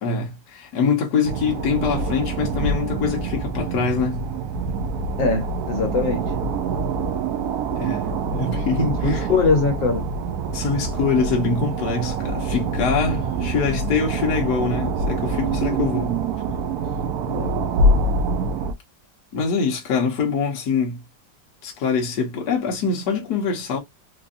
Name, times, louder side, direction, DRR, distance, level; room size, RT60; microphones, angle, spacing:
voice 1, 0.0-4.2 7.8-9.3 10.5-16.2 19.3-21.0 21.6-23.8, left 5 dB, 60° left, 1.5 m, -24 dB
sound 1, 1.2-18.7, right 3 dB, 70° right, 0.9 m, -25 dB
voice 2, 5.2-6.2 9.0-10.0 15.7-15.8 17.3-17.6, left 3 dB, 75° left, 1.7 m, -22 dB
4.5 x 2.6 x 2.5 m
omnidirectional pair, 2.0 m